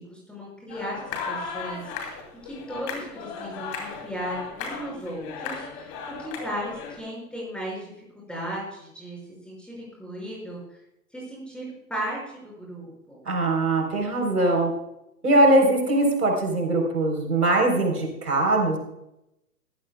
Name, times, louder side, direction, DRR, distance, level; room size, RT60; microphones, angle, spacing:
voice 1, 0.1-2.2 2.4-5.9 6.2-9.2 9.4-10.6 11.1-13.2, right 1 dB, ahead, -4 dB, 5.7 m, -36 dB
sound 1, 0.7-7.0, left 5 dB, 30° left, 2.8 m, -36 dB
voice 2, 13.3-14.7 15.2-18.8, right 2 dB, 70° right, 2 dB, 4.1 m, -21 dB
20.0 x 14.5 x 2.3 m, 0.85 s
figure-of-eight pair, 120°, 48 cm